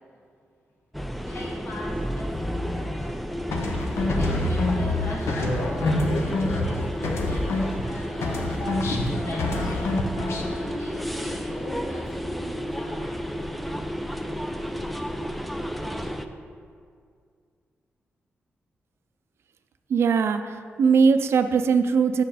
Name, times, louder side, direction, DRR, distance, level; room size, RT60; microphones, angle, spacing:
sound 1, 0.9-16.3, equal, ahead, 0.4 m, -32 dB
voice 1, 1.2-8.6 9.2-9.8 10.5-13.2 14.4-14.5, left 1 dB, 65° left, -5 dB, 1.8 m, -40 dB
sound 2, 3.5-7.9 8.2-10.6, left 2 dB, 85° left, 0.8 m, -26 dB
voice 2, 19.9-22.2, right 5 dB, 75° right, 9 dB, 0.4 m, -20 dB
7.5 x 6.3 x 4.1 m, 2.2 s
cardioid pair, 80°, 4 cm